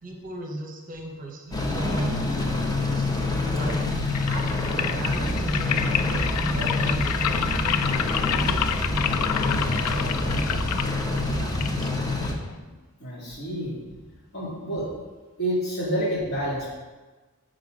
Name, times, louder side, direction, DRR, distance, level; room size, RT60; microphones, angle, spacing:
voice 1, 0.0-3.1 3.5-3.8 4.1-11.9, right 1 dB, 40° right, 2 dB, 0.8 m, -37 dB
sound 1, 1.5-12.3, left 2 dB, 20° left, 0.7 m, -26 dB
sound 2, 3.6-12.6, left 9 dB, 80° left, 0.4 m, -29 dB
voice 2, 13.0-13.8 14.3-14.9 15.4-16.7, equal, 50° left, -6 dB, 2.5 m, -28 dB
8.3 x 3.8 x 5.0 m, 1.3 s
head